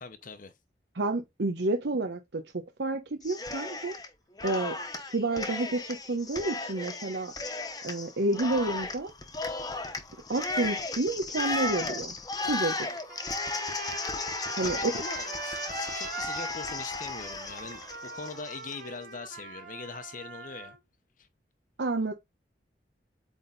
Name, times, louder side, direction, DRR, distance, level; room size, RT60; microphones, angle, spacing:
voice 1, 0.0-0.5 14.6-20.8 21.2-21.3, left 4 dB, 50° left, 0.7 m, -42 dB
voice 2, 0.9-4.0 4.4-7.3 7.8-9.1 10.3-12.1 12.5-12.9 14.6-14.9 21.8-22.1, right 2 dB, 80° right, 0.9 m, -30 dB
Cheering, 3.2-4.1 4.4-18.8, left 3 dB, 20° left, 1.0 m, -35 dB
Trumpet, 13.1-20.8, right 4 dB, 50° right, 1.7 m, -41 dB
8.4 x 3.6 x 3.9 m
head